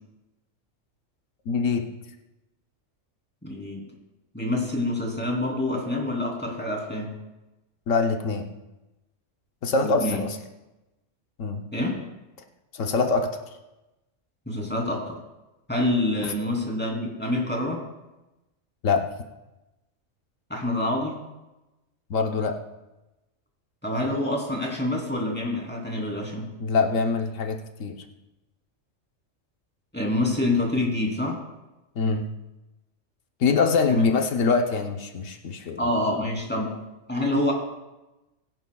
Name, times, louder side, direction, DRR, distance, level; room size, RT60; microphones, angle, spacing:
voice 1, 1.5-1.9 7.9-8.5 9.6-10.4 11.4-11.7 12.7-13.4 16.2-16.3 18.8-19.1 22.1-22.6 26.6-28.0 32.0-32.3 33.4-35.9, left 4 dB, 85° left, 4 dB, 1.3 m, -24 dB
voice 2, 3.4-3.8 4.3-7.1 9.8-10.2 11.7-12.0 14.5-15.2 15.7-17.8 20.5-21.2 23.8-26.5 29.9-31.4 33.9-34.0 35.8-36.7 37.1-37.5, left 1 dB, 10° left, -2 dB, 3.0 m, -26 dB
22.0 x 10.5 x 2.3 m, 1.0 s
omnidirectional pair, 1.3 m